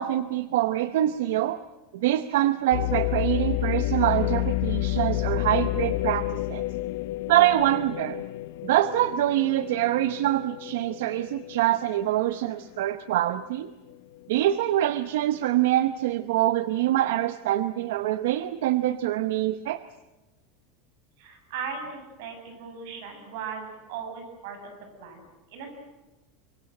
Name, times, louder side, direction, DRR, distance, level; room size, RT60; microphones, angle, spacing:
voice 1, 0.0-1.6 1.9-6.6 7.3-8.2 8.6-13.7 14.3-19.8, right 14 dB, 85° right, 12 dB, 0.9 m, -25 dB
sound 1, 2.7-12.7 13.1-13.2 13.9-14.3, left 16 dB, 75° left, 0.7 m, -30 dB
voice 2, 21.2-25.7, right 6 dB, 70° right, 5 dB, 7.8 m, -38 dB
24.5 x 23.5 x 7.8 m, 1.1 s
supercardioid pair, 155°, 0 cm